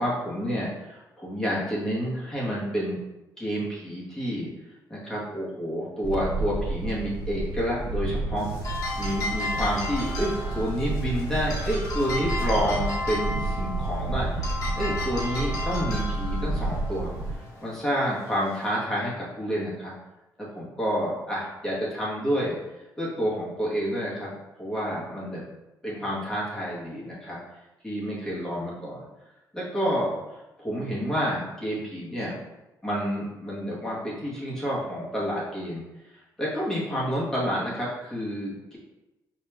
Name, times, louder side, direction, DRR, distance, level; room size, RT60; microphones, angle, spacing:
voice 1, 0.0-3.0 3.4-4.5 4.9-8.5 9.0-17.1 17.6-19.9 20.4-22.5 23.0-25.4 25.8-27.4 27.8-29.0 29.5-32.4 32.8-35.8 36.1-38.8, equal, 10° left, -7 dB, 1.1 m, -29 dB
Wind, 6.0-17.3, right 2 dB, 80° right, 0.4 m, -30 dB
sound 1, 8.4-18.8, left 2 dB, 55° left, 1.4 m, -34 dB
4.5 x 2.9 x 2.2 m, 0.98 s
cardioid pair, 140°, 7 cm